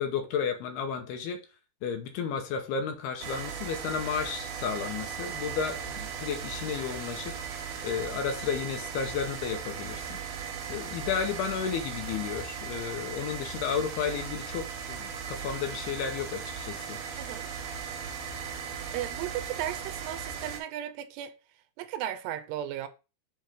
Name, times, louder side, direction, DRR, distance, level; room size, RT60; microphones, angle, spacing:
voice 1, 0.0-1.4 1.8-7.3 7.8-10.2 10.7-17.0, left 7 dB, 75° left, 2.8 m, -32 dB
sound 1, 3.2-20.6, right 7 dB, 65° right, 2.9 m, -38 dB
voice 2, 18.9-21.3 21.8-22.9, right 12 dB, 85° right, 2.7 m, -35 dB
7.5 x 3.1 x 5.1 m
omnidirectional pair, 4.9 m